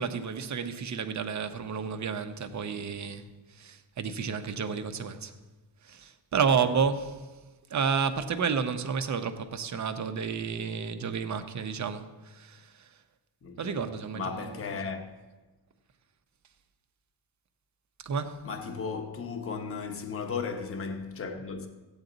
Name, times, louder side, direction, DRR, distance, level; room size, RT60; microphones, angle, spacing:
voice 1, 0.0-5.3 5.8-7.2 7.7-12.9 13.6-14.8 18.0-18.4, right 6 dB, 40° right, 0.7 m, -31 dB
voice 2, 13.4-15.1 18.4-21.7, left 5 dB, 30° left, 0.9 m, -36 dB
15.5 x 8.9 x 3.9 m
wide cardioid pair, 170°, 42 cm